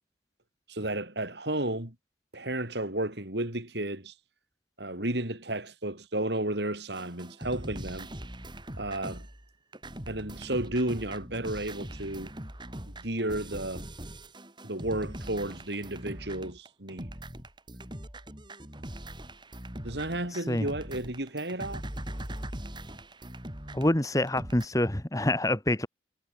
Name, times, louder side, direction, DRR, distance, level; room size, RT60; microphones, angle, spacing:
voice 1, 0.7-1.9 2.3-4.1 4.8-8.1 8.8-9.3 10.1-12.3 12.9-13.9 14.6-17.1 19.8-21.9, right 1 dB, 65° right, 4.7 m, -33 dB
sound 1, 7.0-24.7, right 1 dB, 25° right, 5.8 m, -41 dB
voice 2, 23.7-25.9, left 1 dB, 20° left, 1.5 m, -26 dB
head